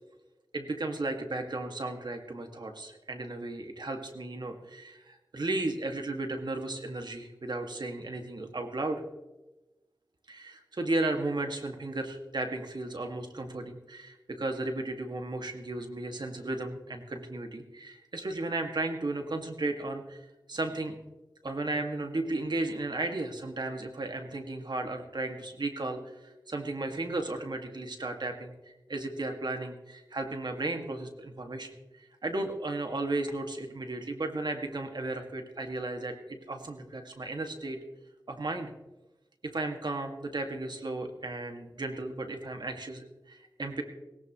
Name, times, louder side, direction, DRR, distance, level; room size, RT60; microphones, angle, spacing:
voice 1, 0.5-9.0 10.3-20.2 20.5-21.0 21.4-28.5 28.9-37.8 38.3-38.7 39.4-43.8, right 2 dB, 65° right, 4 dB, 2.1 m, -34 dB
18.0 x 18.0 x 3.1 m, 1.0 s
wide cardioid pair, 55°, 8 cm